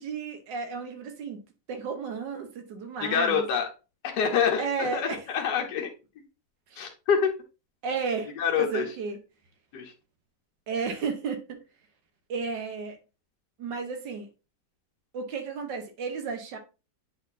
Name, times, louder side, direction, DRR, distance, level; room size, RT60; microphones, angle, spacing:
voice 1, 0.0-1.4 1.7-3.4 4.6-5.2 6.7-6.9 7.8-9.2 10.7-11.6 12.3-13.0 13.6-14.3 15.1-16.6, right 5 dB, 80° right, 1.7 m, -33 dB
voice 2, 3.0-3.7 4.0-5.9 6.8-7.3 8.4-8.9 9.7-9.9, left 7 dB, 70° left, 1.5 m, -26 dB
8.7 x 4.2 x 2.7 m
omnidirectional pair, 1.9 m